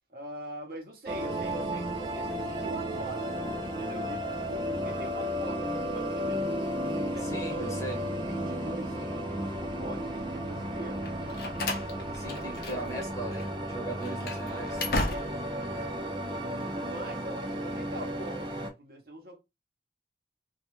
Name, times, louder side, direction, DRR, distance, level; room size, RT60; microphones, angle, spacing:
voice 1, 0.1-6.4 6.8-7.8 8.1-11.0 14.5-16.3 16.8-18.5 18.8-19.4, right 1 dB, 55° right, 0.8 m, -44 dB
sound 1, 1.1-18.7, equal, 25° right, 0.5 m, -33 dB
voice 2, 7.2-8.0 12.1-14.8, right 2 dB, 20° left, 0.9 m, -38 dB
Slam, 11.0-13.1 13.3-13.5 14.0-15.6, left 2 dB, 55° left, 0.6 m, -34 dB
2.3 x 2.2 x 3.0 m
head